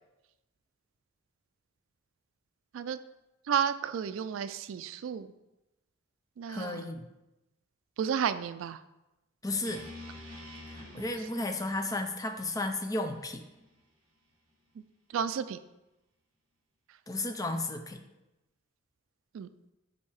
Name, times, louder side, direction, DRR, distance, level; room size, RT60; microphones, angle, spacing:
voice 1, 3.5-5.3 6.4-6.8 8.0-8.8 15.1-15.6 19.3-19.5, right 8 dB, 75° right, 13 dB, 0.3 m, -32 dB
voice 2, 6.5-7.0 9.4-9.9 10.7-13.4 17.1-18.0, left 2 dB, 15° left, 6 dB, 0.5 m, -33 dB
sound 1, 9.6-13.8, left 1 dB, 25° right, 2.2 m, -49 dB
8.3 x 2.8 x 4.6 m, 0.97 s
head